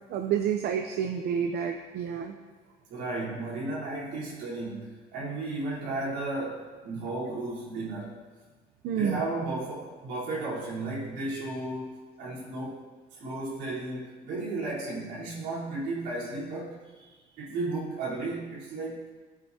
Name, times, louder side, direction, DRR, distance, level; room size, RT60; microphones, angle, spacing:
voice 1, 0.1-2.4 8.8-9.2, right 8 dB, 70° right, 5 dB, 0.7 m, -29 dB
voice 2, 2.9-8.2 8.9-12.8 13.1-19.1, right 2 dB, 90° right, -6 dB, 3.9 m, -34 dB
16.0 x 9.1 x 2.9 m, 1.3 s
cardioid pair, 110°, 17 cm